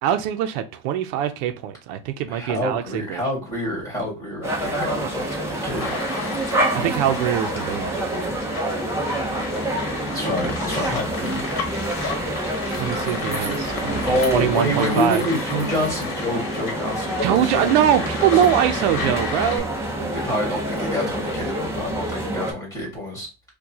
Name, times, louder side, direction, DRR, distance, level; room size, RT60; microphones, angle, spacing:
voice 1, 0.0-3.2 6.7-8.3 12.8-15.2 17.2-19.7 20.0-20.2, right 10 dB, 80° right, 0.6 m, -23 dB
voice 2, 2.3-5.9 10.1-11.4 14.0-17.7 18.0-18.3 18.7-18.8 20.1-23.3, equal, 10° left, 1.9 m, -27 dB
sound 1, 4.4-22.5, right 1 dB, 10° right, 0.6 m, -27 dB
sound 2, 5.8-19.6, left 4 dB, 40° left, 1.1 m, -33 dB
4.4 x 2.3 x 2.8 m
cardioid pair, 145°, 33 cm